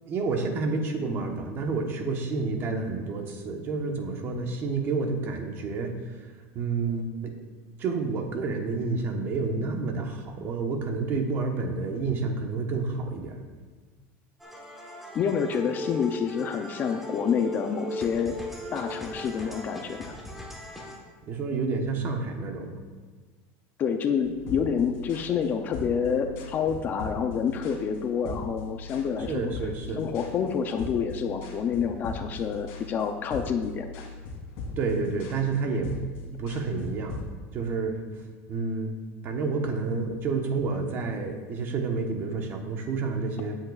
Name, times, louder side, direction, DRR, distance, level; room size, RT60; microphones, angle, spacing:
voice 1, 0.1-6.2 6.5-7.3 7.8-13.4 21.3-22.8 29.3-30.0 34.8-35.9 36.4-37.2 37.5-38.0 38.5-39.0 39.2-43.6, right 4 dB, 30° right, 4 dB, 1.1 m, -29 dB
sound 1, 14.4-21.0, equal, ahead, 1.2 m, -38 dB
voice 2, 15.1-18.3 18.7-20.1 23.8-29.5 30.0-33.9, left 7 dB, 25° left, 6 dB, 0.5 m, -28 dB
sound 2, 24.2-37.3, left 2 dB, 65° left, 2.4 m, -40 dB
17.0 x 7.7 x 2.4 m, 1.4 s
cardioid pair, 165°, 7 cm